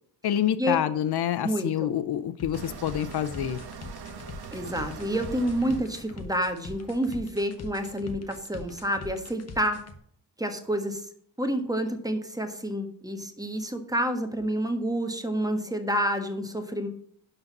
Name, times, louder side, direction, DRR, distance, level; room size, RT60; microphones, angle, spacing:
voice 1, 0.2-3.6, left 10 dB, 65° left, 13 dB, 0.7 m, -27 dB
voice 2, 1.4-1.9 4.5-9.8 10.4-11.0 11.4-16.9, equal, 10° right, 6 dB, 1.4 m, -29 dB
sound 1, 2.4-10.0, left 3 dB, 35° left, 1.3 m, -42 dB
sound 2, 2.5-7.5, right 5 dB, 65° right, 1.4 m, -43 dB
11.5 x 4.0 x 7.2 m, 0.65 s
cardioid pair, 90°, 42 cm